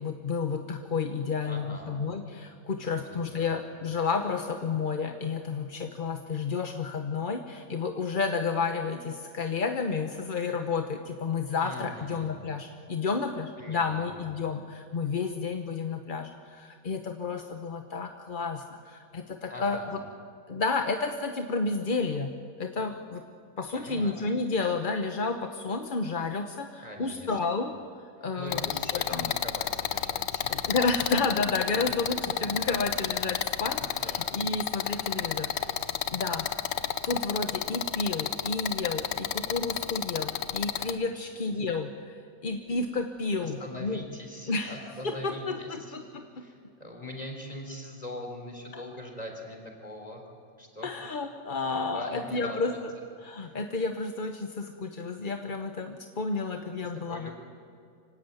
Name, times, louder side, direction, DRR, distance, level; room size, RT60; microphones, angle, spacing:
voice 1, 0.0-20.0 20.5-23.2 23.6-27.8 28.2-29.3 30.5-36.5 37.0-44.0 44.5-46.5 50.8-52.9 53.2-57.3, left 4 dB, 35° left, 5 dB, 0.9 m, -31 dB
voice 2, 1.4-2.0 2.8-3.6 11.6-12.3 13.6-14.2 19.5-20.0 23.7-24.3 26.8-27.4 28.4-30.9 32.1-32.3 33.7-34.2 40.7-41.3 43.4-46.0 46.3-50.2 50.6-50.9 51.6-52.8 53.4-53.5 57.1-57.3, equal, 20° left, 3 dB, 3.8 m, -42 dB
sound 1, 28.5-40.9, left 10 dB, 80° left, 1.4 m, -31 dB
25.0 x 17.0 x 9.2 m, 2.4 s
omnidirectional pair, 1.8 m